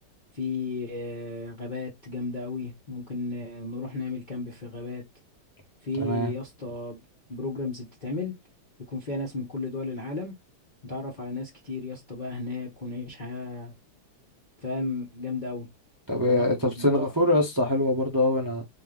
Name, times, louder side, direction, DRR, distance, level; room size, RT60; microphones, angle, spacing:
voice 1, 0.3-5.0 5.8-7.0 7.3-8.3 8.9-10.3 10.8-13.7 14.6-15.7 16.2-17.1, left 3 dB, 35° left, 0.8 m, -34 dB
voice 2, 6.0-6.3 16.1-18.6, left 1 dB, 20° right, 0.6 m, -24 dB
4.0 x 2.9 x 3.8 m
omnidirectional pair, 2.4 m